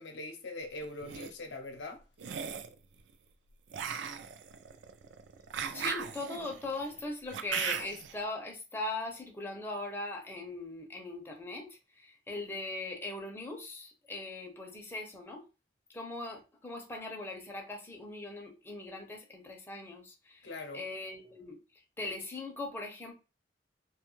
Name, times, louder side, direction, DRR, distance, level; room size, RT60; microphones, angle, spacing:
voice 1, 0.0-2.0 20.4-20.8, left 2 dB, 80° left, 0.6 m, -42 dB
sound 1, 0.8-1.3 2.2-2.7 3.7-8.1, right 7 dB, 80° right, 0.4 m, -37 dB
voice 2, 5.7-15.4 15.9-21.6 22.0-23.1, left 2 dB, 15° left, 0.5 m, -40 dB
2.6 x 2.2 x 3.0 m
head